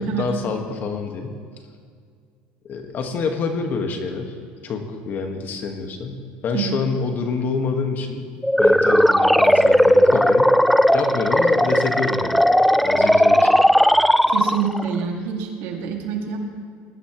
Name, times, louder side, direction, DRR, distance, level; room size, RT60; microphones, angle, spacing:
voice 1, 0.0-1.4 2.7-4.3 4.6-8.3 8.6-12.4 12.8-13.6, left 4 dB, 45° left, 4 dB, 1.7 m, -27 dB
sound 1, 8.4-14.9, equal, ahead, 0.3 m, -16 dB
voice 2, 14.3-16.4, right 7 dB, 70° right, 1 dB, 2.3 m, -26 dB
20.5 x 11.5 x 3.2 m, 2.1 s
supercardioid pair, 115°, 4 cm